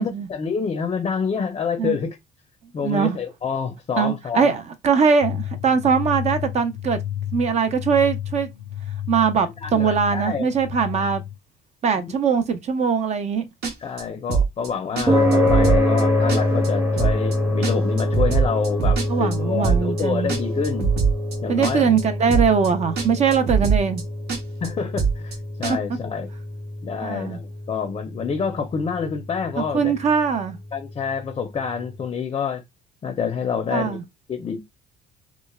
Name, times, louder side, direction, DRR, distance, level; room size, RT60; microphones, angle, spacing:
voice 1, 0.0-2.2 2.7-4.5 9.6-10.5 12.0-12.2 13.8-20.9 21.4-21.8 24.6-26.3 26.8-29.9 30.7-32.6 33.0-34.0 34.3-34.6, left 6 dB, 35° left, 0.5 m, -27 dB
voice 2, 2.8-3.2 4.0-7.0 7.3-8.5 9.1-11.2 11.8-13.5 19.1-20.3 21.5-24.0 27.0-27.4 29.6-30.6 33.7-34.0, right 6 dB, 40° right, 0.5 m, -21 dB
sound 1, 5.2-11.4, left 11 dB, 85° left, 0.4 m, -31 dB
sound 2, 13.6-14.0 14.3-14.7 15.0-15.1 15.3-16.0 16.3-16.7 17.0-17.4 17.6-19.4 19.6-20.0 20.3-21.4 21.6-22.0 22.3-22.7 23.0-23.1 23.3-24.0 24.3-24.7 25.0-25.4 25.6-25.7, right 6 dB, 75° right, 0.8 m, -21 dB
sound 3, 15.1-31.6, left 1 dB, 15° right, 0.8 m, -25 dB
3.1 x 2.1 x 2.2 m
cardioid pair, 110°, 17 cm